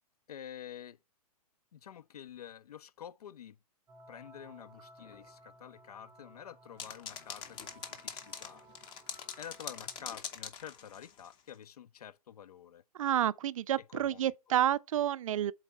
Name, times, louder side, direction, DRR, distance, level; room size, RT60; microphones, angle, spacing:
voice 1, 0.3-1.0 1.7-3.6 4.1-8.8 9.4-12.8 13.9-14.3, left 9 dB, 75° left, 0.5 m, -49 dB
sound 1, 3.9-10.0, right 2 dB, 10° right, 0.7 m, -58 dB
sound 2, 5.0-6.3 7.0-7.1 7.4-8.1 8.8-8.9 10.0-10.3, left 7 dB, 55° left, 2.2 m, -60 dB
sound 3, 6.8-11.3, left 7 dB, 25° left, 0.8 m, -43 dB
voice 2, 12.9-15.5, right 11 dB, 60° right, 0.4 m, -30 dB
8.1 x 3.9 x 4.2 m
hypercardioid pair, 140°, 20 cm